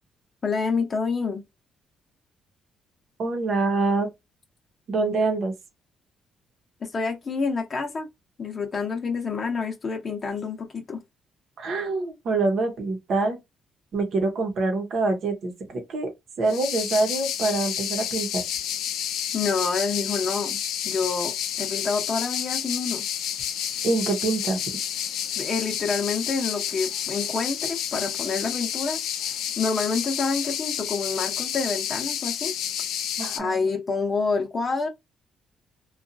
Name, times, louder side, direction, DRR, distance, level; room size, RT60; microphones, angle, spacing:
voice 1, 0.4-1.4 6.8-8.1 8.4-11.0 19.3-20.6 20.8-23.0 25.4-29.0 29.2-32.5 33.3-34.9, left 4 dB, 40° left, 0.7 m, -28 dB
voice 2, 3.2-4.1 4.9-5.5 11.6-13.4 13.9-16.1 16.4-18.4 23.8-24.6 33.2-33.6, right 3 dB, 65° right, 0.9 m, -25 dB
sound 1, 16.5-33.4, left 9 dB, 85° left, 0.4 m, -30 dB
2.8 x 2.4 x 2.5 m
cardioid pair, 90°, 0 cm